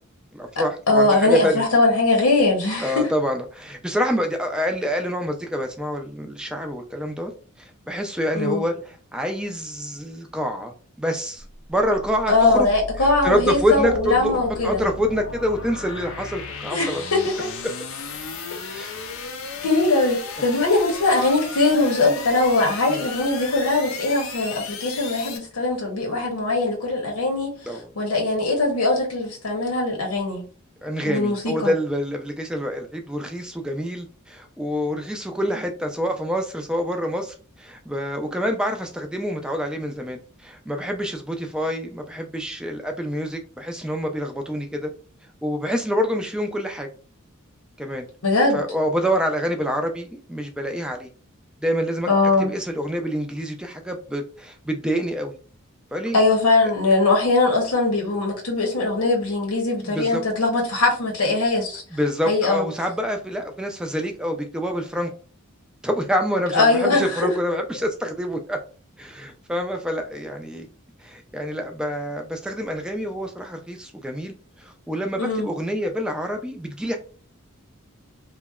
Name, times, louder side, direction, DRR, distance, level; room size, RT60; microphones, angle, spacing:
voice 1, 0.3-1.6 2.8-7.3 7.9-11.4 11.7-12.7 13.2-14.4 14.6-17.0 18.7-19.0 22.9-23.0 27.7-27.9 30.8-44.9 45.4-46.9 47.8-48.1 48.5-51.1 51.6-52.1 52.4-55.4 55.9-56.2 59.8-60.2 61.9-65.1 65.8-68.6 69.0-70.7 71.0-77.0, equal, 5° right, 0.3 m, -26 dB
voice 2, 0.9-3.1 8.3-8.6 12.3-14.8 16.7-17.5 19.6-27.6 28.0-30.4 31.0-31.7 48.2-48.6 52.1-52.5 56.1-61.8 62.3-62.6 66.5-67.1 75.2-75.5, left 3 dB, 90° left, 0.8 m, -21 dB
sound 1, 11.4-25.4, left 4 dB, 65° left, 0.4 m, -35 dB
2.7 x 2.1 x 2.3 m
head